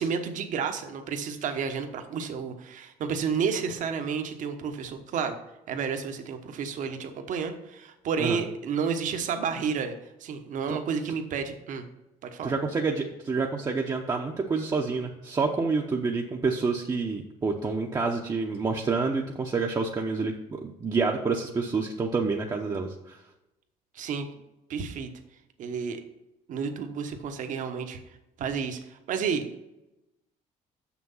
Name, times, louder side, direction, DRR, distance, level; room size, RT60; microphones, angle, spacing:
voice 1, 0.0-5.4 5.7-9.9 10.2-11.8 12.2-12.5 23.9-24.3 24.7-25.1 25.6-26.0 26.5-28.0 28.4-29.5, right 6 dB, 60° right, 7 dB, 1.1 m, -31 dB
voice 2, 12.4-23.2, right 4 dB, 25° right, 0 dB, 0.8 m, -28 dB
6.7 x 6.1 x 5.6 m, 0.93 s
cardioid pair, 115°, 15 cm